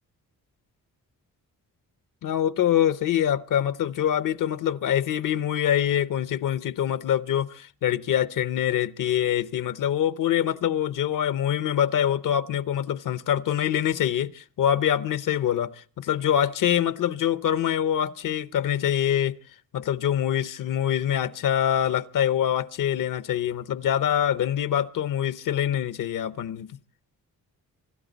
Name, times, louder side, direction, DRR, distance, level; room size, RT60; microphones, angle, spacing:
voice 1, 2.2-19.4 19.7-26.7, left 10 dB, 65° left, 0.7 m, -25 dB
25.5 x 12.5 x 4.0 m
wide cardioid pair, 175°, 35 cm